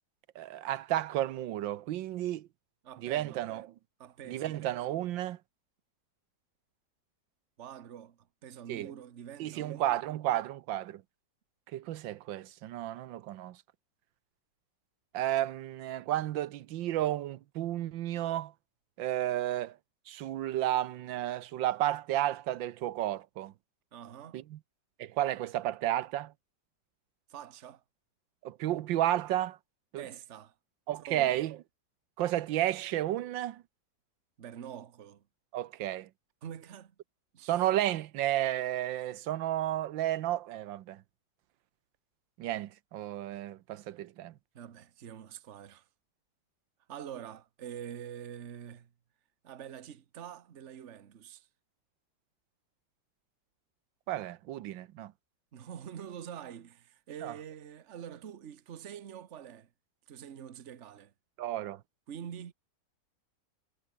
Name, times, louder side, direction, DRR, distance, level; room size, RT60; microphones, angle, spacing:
voice 1, 0.3-2.5 3.0-3.7 4.3-5.4 8.7-8.9 9.4-11.0 11.7-13.6 15.1-18.5 19.0-19.8 20.1-23.5 24.3-24.6 25.0-26.3 28.4-29.6 29.9-30.0 30.9-31.6 32.2-33.6 35.5-36.1 37.4-41.0 42.4-44.3 54.1-55.1 57.2-57.3 61.4-61.8, right 13 dB, 85° right, 1.5 m, -32 dB
voice 2, 2.8-3.5 4.0-4.6 7.6-10.0 23.9-24.4 27.3-27.8 30.0-30.5 31.1-31.5 34.4-35.2 36.4-36.9 37.3-37.5 44.5-45.9 46.9-48.9 49.4-51.5 55.5-59.7 60.1-61.1 62.1-62.5, right 9 dB, 45° right, 1.3 m, -45 dB
omnidirectional pair, 2.0 m